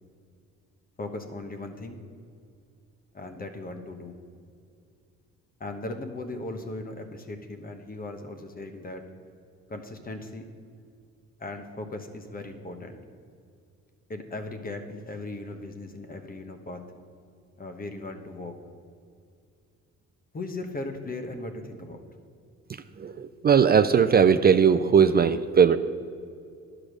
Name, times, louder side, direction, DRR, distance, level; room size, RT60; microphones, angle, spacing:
voice 1, 1.0-2.0 3.1-4.1 5.6-9.0 9.7-10.5 11.4-13.0 14.1-16.8 17.6-18.5 20.3-22.0, left 2 dB, 30° left, 6 dB, 1.1 m, -37 dB
voice 2, 23.0-25.8, right 7 dB, 35° right, 10 dB, 0.4 m, -19 dB
10.5 x 5.0 x 6.3 m, 2.4 s
cardioid pair, 90°, 30 cm